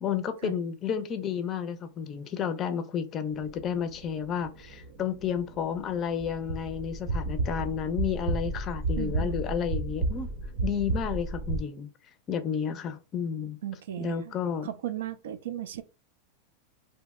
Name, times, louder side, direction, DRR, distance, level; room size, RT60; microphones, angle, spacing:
voice 1, 0.0-10.3 10.6-11.9 12.3-13.6 14.0-14.7, left 8 dB, 30° left, 0.4 m, -31 dB
sound 1, 3.3-11.6, right 2 dB, 65° right, 0.7 m, -33 dB
voice 2, 9.0-9.4 13.6-14.3 14.6-15.8, right 11 dB, 80° right, 0.4 m, -36 dB
2.7 x 2.1 x 3.5 m
supercardioid pair, 150°, 0 cm